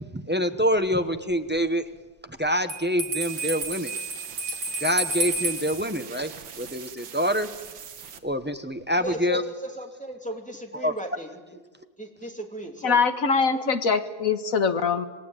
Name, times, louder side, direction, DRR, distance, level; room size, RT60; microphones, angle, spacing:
voice 1, 0.1-1.8 2.4-3.9 4.8-6.3 6.6-7.5 8.2-9.4 10.8-10.9, equal, 15° right, 8 dB, 0.4 m, -26 dB
Bell, 2.7-5.8, right 2 dB, 65° right, 3.4 m, -30 dB
sound 1, 3.2-8.2, right 7 dB, 85° right, 2.1 m, -42 dB
voice 2, 9.0-11.4 12.0-13.0 13.5-13.7, right 1 dB, 5° left, 2 dB, 2.7 m, -36 dB
voice 3, 12.8-15.1, left 5 dB, 50° left, 9 dB, 1.8 m, -23 dB
27.5 x 20.0 x 9.0 m, 1.3 s
omnidirectional pair, 2.0 m